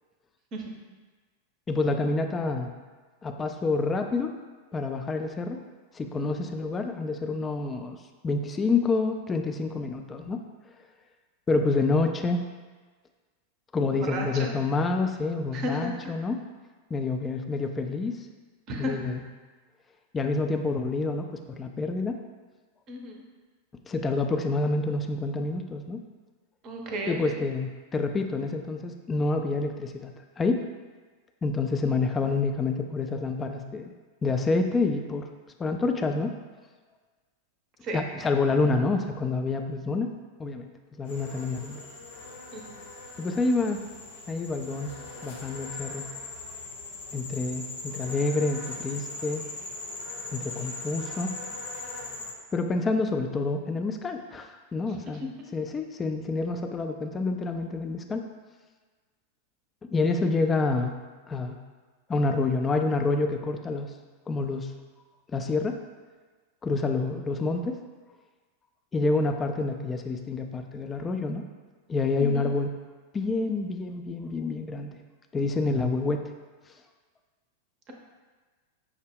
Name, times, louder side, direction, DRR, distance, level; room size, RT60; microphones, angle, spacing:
voice 1, 1.7-2.7 3.2-4.3 4.7-5.6 5.9-8.0 8.2-10.4 11.5-12.4 13.7-16.4 16.9-18.1 18.8-19.2 20.1-22.2 23.9-26.0 27.1-30.6 31.4-33.9 34.2-35.3 35.6-36.3 37.9-40.1 40.4-40.7 41.0-41.8 43.2-43.8 44.3-44.9 45.2-46.1 47.1-49.4 50.3-51.3 52.5-55.2 55.5-58.2 59.9-61.0 61.3-61.6 62.1-63.9 64.3-64.7 65.3-65.8 66.6-67.8 68.9-71.4 71.9-72.7 73.1-74.9 75.3-76.2, left 3 dB, 20° left, 5 dB, 0.3 m, -28 dB
voice 2, 14.0-14.5 15.5-15.9 18.7-19.0 22.9-23.2 26.6-27.4 37.8-38.0 42.5-42.6 72.2-72.5, equal, 35° right, 1 dB, 0.6 m, -33 dB
sound 1, 41.1-52.3, left 3 dB, 60° left, 0.8 m, -40 dB
5.9 x 2.1 x 3.5 m, 1.4 s
figure-of-eight pair, 90°, 0 cm